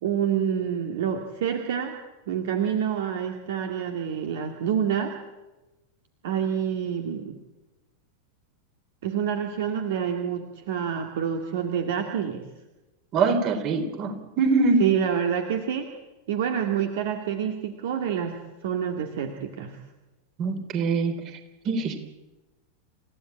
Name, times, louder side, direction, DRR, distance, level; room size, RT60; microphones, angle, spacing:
voice 1, 0.0-2.0 2.3-5.1 6.2-7.4 9.0-12.4 14.8-15.9 16.3-18.3 18.6-19.8, right 8 dB, 55° right, 4 dB, 2.1 m, -27 dB
voice 2, 13.1-14.8 20.4-21.2 21.7-22.0, right 4 dB, 35° right, 8 dB, 3.6 m, -23 dB
28.5 x 15.5 x 8.9 m, 1.1 s
figure-of-eight pair, 90°, 0 cm